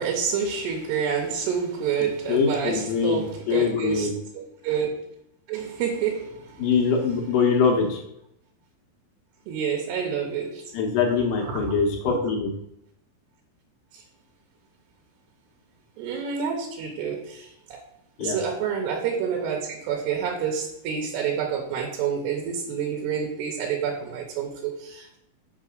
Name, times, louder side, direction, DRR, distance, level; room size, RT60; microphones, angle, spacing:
voice 1, 0.0-4.1 4.4-4.9 5.5-6.7 9.5-10.6 11.5-11.7 12.1-12.2 13.9-14.0 16.0-17.8 18.2-25.2, right 7 dB, 80° right, 0 dB, 3.0 m, -28 dB
voice 2, 2.0-4.1 6.6-8.0 10.7-12.5 18.2-18.4, left 5 dB, 75° left, 2 dB, 2.1 m, -23 dB
6.4 x 4.7 x 6.3 m, 0.78 s
omnidirectional pair, 4.8 m